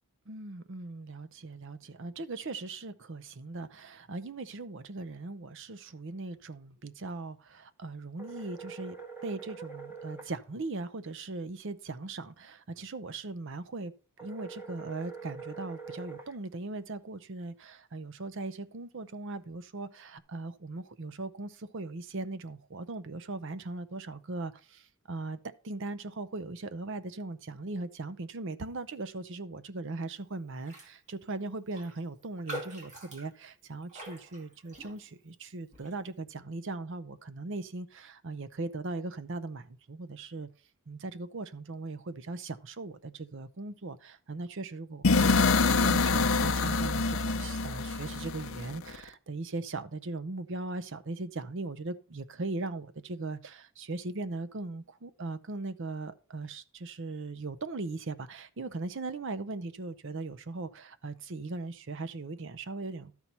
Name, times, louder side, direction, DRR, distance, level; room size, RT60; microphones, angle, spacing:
voice 1, 0.3-9.0 9.2-13.9 14.2-25.4 25.6-40.5 40.9-63.1, right 3 dB, 55° right, 0.7 m, -39 dB
sound 1, 8.2-10.3 14.2-16.3, right 5 dB, 10° right, 1.2 m, -44 dB
Raindrop, 30.6-30.9 31.2-31.3 31.7-35.3 35.7-36.0, right 1 dB, 35° right, 2.2 m, -44 dB
sound 2, 45.0-49.0, left 4 dB, 65° left, 0.7 m, -26 dB
12.5 x 4.5 x 5.4 m
head